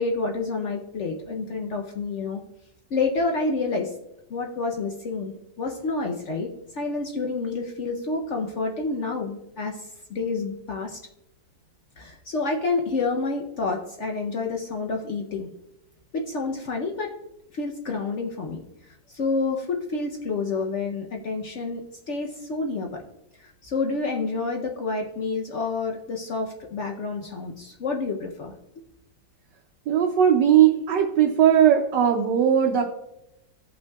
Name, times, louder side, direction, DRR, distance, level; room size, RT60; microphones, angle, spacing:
voice 1, 0.0-2.4 2.9-3.9 4.3-6.5 6.7-11.0 12.0-15.5 16.1-17.1 17.5-18.6 19.1-21.8 22.1-23.0 23.4-28.5, left 3 dB, 75° left, 2 dB, 0.6 m, -28 dB
voice 2, 29.9-32.9, right 9 dB, 70° right, 3 dB, 1.2 m, -18 dB
15.5 x 5.5 x 2.3 m, 0.87 s
omnidirectional pair, 2.1 m